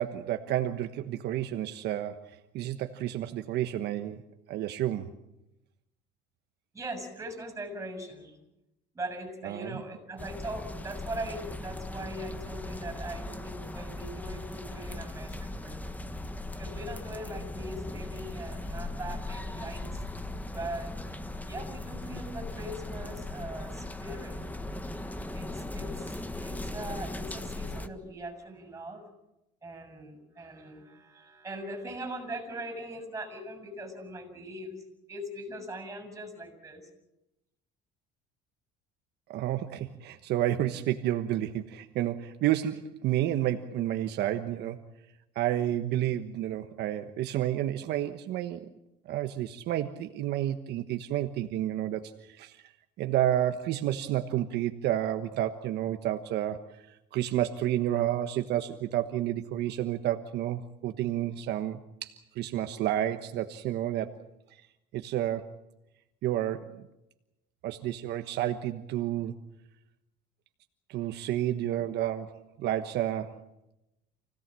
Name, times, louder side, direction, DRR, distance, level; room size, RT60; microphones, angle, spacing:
voice 1, 0.0-4.2 4.5-5.1 9.4-9.8 39.3-44.8 45.3-48.7 49.1-52.7 53.0-64.2 64.5-64.7 64.9-65.5 66.2-66.8 67.6-69.4 70.9-73.4, right 12 dB, 65° right, 7 dB, 1.3 m, -30 dB
voice 2, 6.7-8.4 8.9-15.8 16.6-20.0 20.4-21.0 21.5-24.4 25.3-29.1 29.6-36.8, right 1 dB, 15° right, 7 dB, 7.1 m, -40 dB
sound 1, 10.2-27.9, left 2 dB, 10° left, 1.5 m, -38 dB
28.5 x 17.5 x 7.7 m, 0.92 s
cardioid pair, 125°, 18 cm